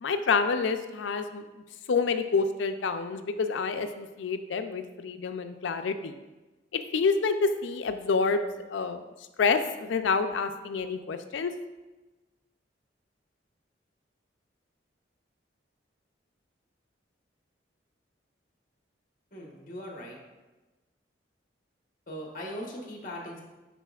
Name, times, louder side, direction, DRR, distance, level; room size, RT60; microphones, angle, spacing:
voice 1, 0.0-6.1 6.7-9.0 9.4-11.5, left 4 dB, 75° left, 9 dB, 0.4 m, -28 dB
voice 2, 19.3-20.2 22.1-23.4, equal, 45° left, 0 dB, 1.2 m, -39 dB
10.0 x 4.0 x 2.4 m, 1.2 s
head